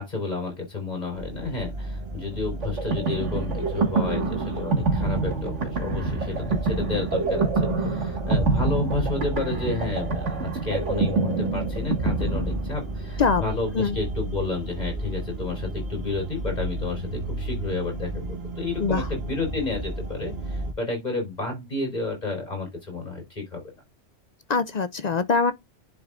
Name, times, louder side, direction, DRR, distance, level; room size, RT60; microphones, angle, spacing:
voice 1, 0.0-23.6, left 3 dB, 35° left, 3.9 m, -31 dB
sound 1, 1.1-20.7, right 2 dB, 55° right, 1.5 m, -33 dB
sound 2, 2.6-13.1, right 3 dB, 75° right, 2.1 m, -26 dB
voice 2, 24.5-25.5, left 4 dB, 55° left, 0.5 m, -23 dB
10.5 x 4.7 x 2.5 m
omnidirectional pair, 1.3 m